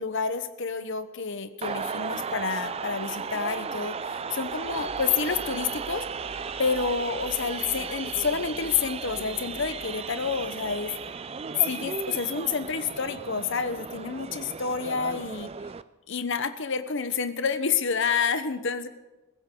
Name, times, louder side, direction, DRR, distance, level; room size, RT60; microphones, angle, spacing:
voice 1, 0.0-6.0 6.6-10.9 11.6-15.5 16.1-18.9, left 5 dB, 60° left, 11 dB, 0.9 m, -29 dB
sound 1, 1.6-15.8, right 5 dB, 30° right, 0.4 m, -35 dB
sound 2, 4.5-11.1, equal, 15° left, 1.2 m, -50 dB
22.0 x 15.5 x 3.8 m, 1.1 s
head